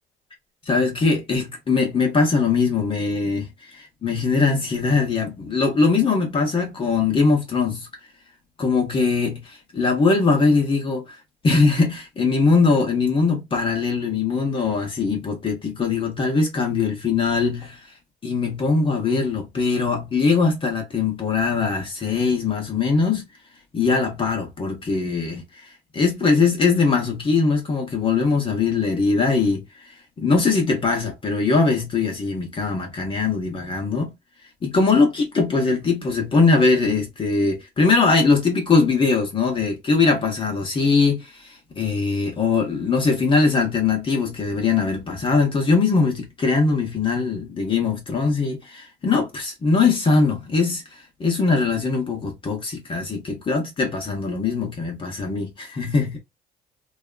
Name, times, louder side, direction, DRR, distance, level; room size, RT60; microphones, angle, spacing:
voice 1, 0.7-7.9 8.6-11.2 11.4-17.9 18.2-23.2 23.7-25.4 25.9-29.9 30.2-34.1 34.6-56.2, left 4 dB, 30° left, 0.9 m, -21 dB
2.8 x 2.3 x 2.2 m
cardioid pair, 110°, 17 cm